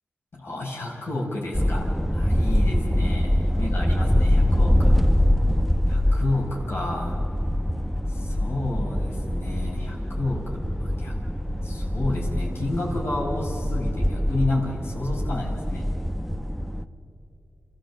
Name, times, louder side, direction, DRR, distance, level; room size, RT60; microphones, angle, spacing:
voice 1, 0.3-5.0 5.9-7.2 8.1-11.2 11.6-15.9, left 2 dB, 70° left, -2 dB, 5.2 m, -31 dB
sound 1, 1.5-16.8, equal, ahead, 0.8 m, -24 dB
28.0 x 14.0 x 7.3 m, 2.9 s
cardioid pair, 65°, 4 cm